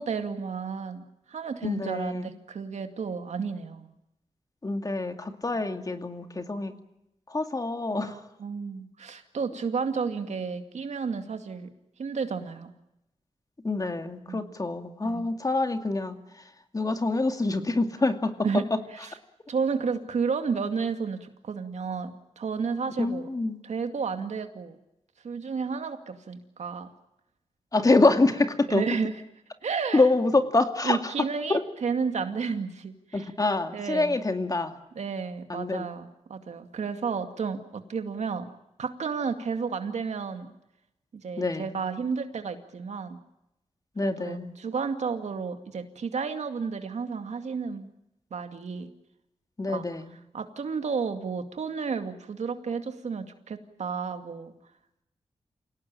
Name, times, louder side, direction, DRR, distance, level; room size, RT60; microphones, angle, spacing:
voice 1, 0.0-3.9 7.9-11.7 12.0-12.7 14.3-14.4 15.0-15.2 18.4-19.2 19.5-23.3 23.6-24.8 25.2-26.9 27.8-27.9 28.7-29.1 29.6-30.1 30.8-33.3 33.7-34.2 35.0-38.5 38.8-40.5 41.2-43.2 44.0-47.9 48.3-48.9 49.7-49.9 50.3-54.5, right 5 dB, 80° right, 7 dB, 2.3 m, -32 dB
voice 2, 1.6-2.3 4.6-6.7 7.3-8.2 13.6-16.2 16.7-18.3 23.0-23.6 27.7-28.8 29.9-31.0 31.5-31.6 33.1-34.7 35.5-35.9 41.4-41.8 44.0-44.5 49.6-50.1, left 2 dB, 30° left, 7 dB, 2.3 m, -26 dB
28.0 x 18.0 x 8.9 m, 0.86 s
wide cardioid pair, 95°, 12 cm